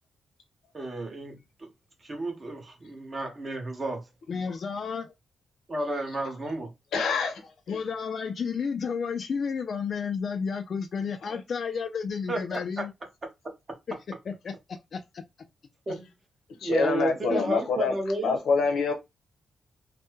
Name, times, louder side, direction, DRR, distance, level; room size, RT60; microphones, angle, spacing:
voice 1, 0.7-1.7 2.0-4.0 5.7-6.7 12.3-12.6 15.9-16.0 16.6-18.4, right 1 dB, 30° right, 1.2 m, -31 dB
voice 2, 4.3-5.1 7.7-12.9 13.9-14.6 14.9-15.5 17.3-17.5, left 6 dB, 50° left, 0.3 m, -32 dB
voice 3, 6.9-7.4 7.7-7.8 11.3-11.4 16.6-17.9 18.2-18.9, left 4 dB, 90° left, 0.8 m, -26 dB
3.1 x 2.2 x 3.1 m
wide cardioid pair, 130°, 0 cm